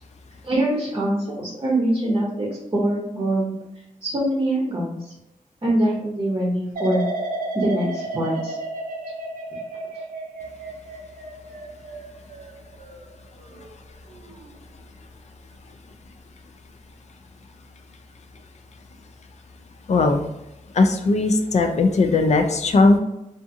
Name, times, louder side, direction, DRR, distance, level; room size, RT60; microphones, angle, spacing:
voice 1, 0.4-3.5 4.0-4.9 5.6-7.0 7.5-8.6, right 1 dB, 30° right, -4 dB, 0.7 m, -23 dB
sound 1, 6.7-13.7 14.1-14.5, right 2 dB, 75° right, 0.5 m, -33 dB
voice 2, 19.9-20.2 20.7-23.0, left 3 dB, 55° left, 6 dB, 0.4 m, -18 dB
2.5 x 2.5 x 2.6 m, 0.88 s
wide cardioid pair, 115°, 14 cm